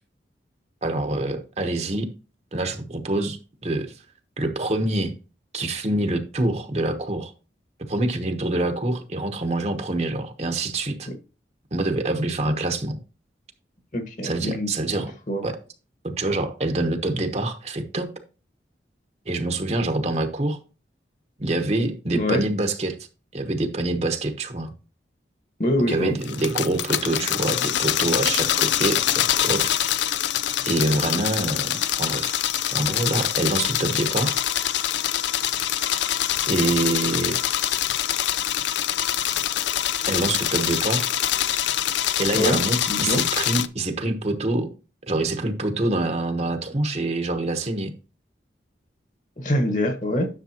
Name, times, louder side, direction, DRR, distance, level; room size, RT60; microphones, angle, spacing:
voice 1, 0.8-2.1 2.5-4.0 4.4-5.1 5.5-7.3 7.9-11.1 11.7-13.0 14.2-15.1 15.4-15.5 16.0-18.1 19.3-20.6 21.4-23.0 23.3-24.7 25.9-30.2 30.6-32.3 32.7-34.4 36.5-37.4 40.1-41.1 42.2-44.7 45.1-47.9, right 2 dB, 35° right, 1.0 m, -26 dB
voice 2, 13.9-14.7 15.3-15.4 22.1-22.4 25.6-26.1 42.3-42.6 42.9-43.2 49.4-50.3, equal, 45° left, 1.5 m, -24 dB
sound 1, 26.2-43.7, left 11 dB, 85° left, 0.5 m, -24 dB
10.0 x 6.7 x 2.9 m
head